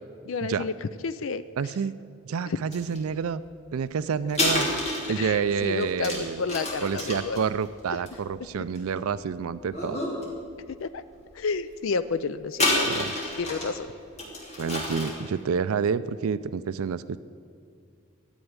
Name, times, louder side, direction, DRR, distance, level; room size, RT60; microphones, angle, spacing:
voice 1, 0.3-1.4 2.5-2.6 5.1-7.4 10.8-11.0 11.3-13.0 13.4-13.9, left 4 dB, 70° left, 12 dB, 0.4 m, -30 dB
voice 2, 1.6-1.9 2.3-3.4 3.7-4.7 5.1-6.4 6.8-10.0 12.9-13.1 14.6-17.2, right 6 dB, 85° right, 15 dB, 0.4 m, -28 dB
sound 1, 2.7-3.0 4.3-9.0 9.6-10.2 10.6-10.7 12.5-13.8 14.2-15.3, left 1 dB, 30° left, 3.2 m, -29 dB
14.0 x 8.1 x 9.5 m, 2.3 s
head